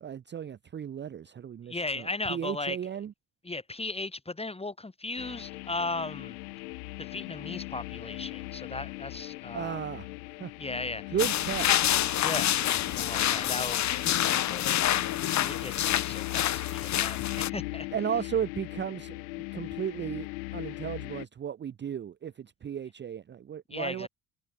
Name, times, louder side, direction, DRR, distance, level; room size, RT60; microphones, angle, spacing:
voice 1, 0.0-3.1 9.5-10.1 10.4-10.5 11.1-11.8 17.9-19.1 19.5-20.3 20.5-24.1, right 9 dB, 25° right, 0.7 m, -34 dB
voice 2, 1.6-2.8 3.4-6.4 7.0-9.8 10.6-11.2 12.1-13.8 14.3-15.0 15.3-17.9 23.7-24.1, left 2 dB, 15° left, 2.6 m, -37 dB
sound 1, 5.2-21.3, left 24 dB, 65° left, 1.8 m, -39 dB
sound 2, 11.2-17.5, left 12 dB, 40° left, 1.1 m, -27 dB
figure-of-eight pair, 50°, 44 cm